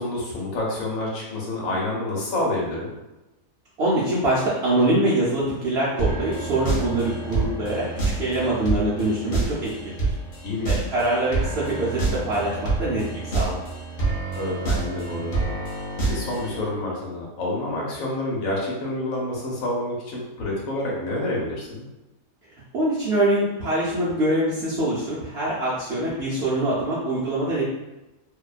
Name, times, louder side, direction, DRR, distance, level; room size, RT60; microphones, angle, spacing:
voice 1, 0.0-2.9 10.4-10.9 14.3-15.5 16.0-21.9, left 1 dB, 70° left, -3 dB, 1.0 m, -28 dB
voice 2, 3.8-7.9 8.2-10.0 10.7-13.6 22.7-27.6, right 1 dB, 65° right, -8 dB, 0.6 m, -24 dB
sound 1, 6.0-16.7, right 3 dB, 50° left, 0.8 m, -27 dB
2.6 x 2.1 x 2.3 m, 1.0 s
omnidirectional pair, 1.6 m